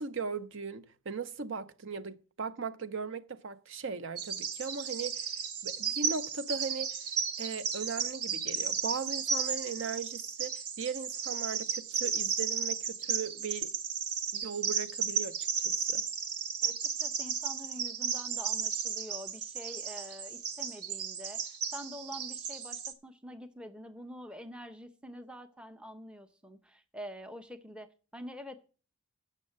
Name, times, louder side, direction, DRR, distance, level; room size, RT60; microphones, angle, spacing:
voice 1, 0.0-5.3 5.6-7.0 7.4-13.7 14.3-16.0, right 5 dB, 55° right, 0.7 m, -38 dB
Bird vocalization bird call bird song, 4.2-22.9, right 6 dB, 85° right, 1.3 m, -34 dB
voice 2, 16.6-28.6, equal, 5° right, 0.7 m, -46 dB
8.2 x 6.5 x 7.5 m
head